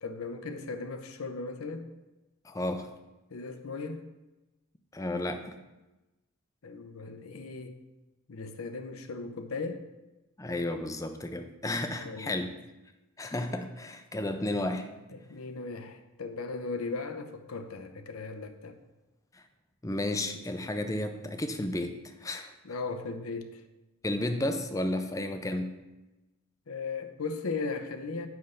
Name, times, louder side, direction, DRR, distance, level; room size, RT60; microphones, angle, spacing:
voice 1, 0.0-1.9 3.3-4.0 6.6-7.8 8.3-9.9 12.0-12.4 15.1-18.8 22.6-23.6 26.7-28.3, left 4 dB, 85° left, 7 dB, 0.8 m, -37 dB
voice 2, 2.4-2.9 4.9-5.6 10.4-12.5 13.2-14.9 19.3-19.4 19.8-22.5 24.0-25.7, left 1 dB, 15° left, 7 dB, 0.5 m, -32 dB
9.3 x 3.4 x 6.8 m, 1.1 s
head